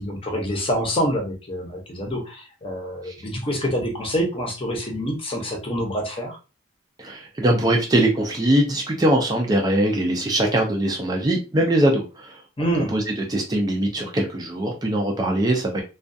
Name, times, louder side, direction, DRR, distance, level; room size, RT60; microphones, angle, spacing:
voice 1, 0.0-6.4 12.6-12.9, equal, 30° left, 1 dB, 0.7 m, -26 dB
voice 2, 7.0-12.4 12.9-15.8, right 1 dB, 20° right, 1 dB, 0.4 m, -22 dB
2.3 x 2.2 x 2.6 m, 0.31 s
head